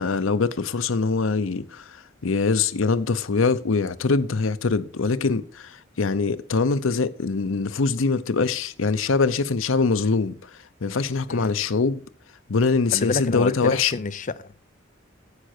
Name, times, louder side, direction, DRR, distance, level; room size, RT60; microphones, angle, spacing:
voice 1, 0.0-10.4 10.8-12.0 12.5-13.9, left 4 dB, 85° left, 0.7 m, -23 dB
voice 2, 12.9-14.6, left 3 dB, 40° left, 0.5 m, -28 dB
9.8 x 7.6 x 4.4 m
head